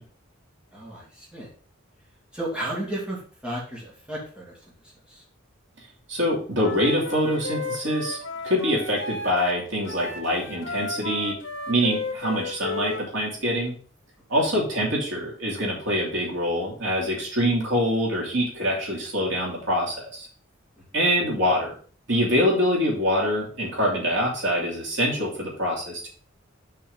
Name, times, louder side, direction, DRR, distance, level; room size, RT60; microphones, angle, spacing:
voice 1, 0.7-1.5 2.3-4.6 5.1-5.2, right 1 dB, 5° right, -6 dB, 2.4 m, -33 dB
voice 2, 6.1-8.2 8.4-11.4 11.7-13.7 14.3-20.3 20.9-21.7 22.1-26.1, equal, 65° right, -3 dB, 2.8 m, -25 dB
Wind instrument woodwind instrument, 6.6-9.6 9.8-13.0, left 3 dB, 70° left, 1.3 m, -33 dB
5.9 x 4.6 x 5.3 m, 0.43 s
head